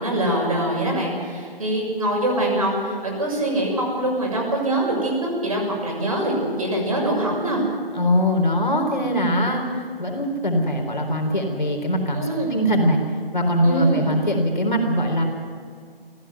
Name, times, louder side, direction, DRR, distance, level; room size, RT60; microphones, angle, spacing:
voice 1, 0.0-7.6 12.1-12.6 13.6-14.1, right 1 dB, 40° right, -1 dB, 6.6 m, -24 dB
voice 2, 7.9-13.0 13.3-15.2, equal, 55° left, 2 dB, 4.1 m, -22 dB
18.0 x 16.0 x 9.4 m, 2.1 s
figure-of-eight pair, 160°, 29 cm